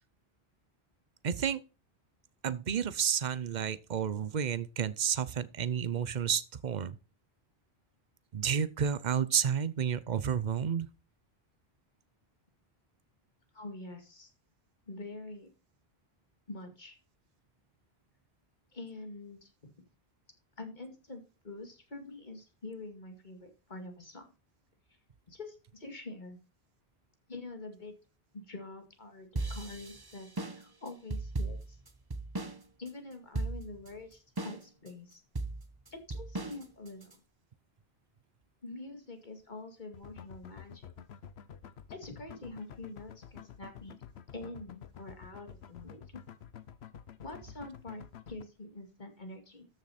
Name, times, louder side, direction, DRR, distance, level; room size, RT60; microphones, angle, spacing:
voice 1, 1.2-1.6 2.4-7.0 8.3-10.9, right 8 dB, 50° right, 0.8 m, -31 dB
voice 2, 13.5-14.3 14.9-15.5 16.5-17.0 18.7-19.9 20.6-24.2 25.3-26.4 27.3-27.9 28.3-31.8 32.8-35.2 35.9-37.1 38.6-40.9 41.9-44.0 44.3-46.2 47.2-49.7, left 2 dB, 45° left, 2.4 m, -46 dB
sound 1, 29.4-32.6 32.9-33.0 33.3-33.9 34.4-34.9 35.4-37.1, right 2 dB, 20° right, 1.0 m, -36 dB
sound 2, 39.9-48.4, left 8 dB, 80° left, 1.0 m, -49 dB
13.5 x 6.5 x 4.2 m
omnidirectional pair, 1.1 m